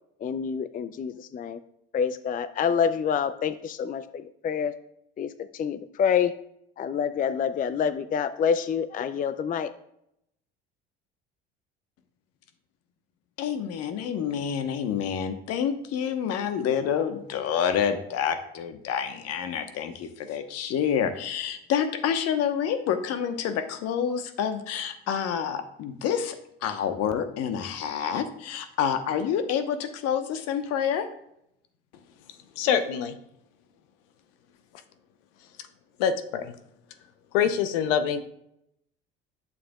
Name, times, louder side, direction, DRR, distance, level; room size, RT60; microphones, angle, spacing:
voice 1, 0.2-1.6 1.9-4.7 5.2-6.3 6.8-9.7, left 7 dB, 30° left, 13 dB, 0.5 m, -27 dB
voice 2, 13.4-31.1, left 8 dB, 60° left, 8 dB, 1.1 m, -28 dB
voice 3, 32.6-33.2 36.0-36.5 37.3-38.2, left 8 dB, 75° left, 9 dB, 0.8 m, -25 dB
11.0 x 6.9 x 2.4 m, 0.77 s
hypercardioid pair, 70°, 29 cm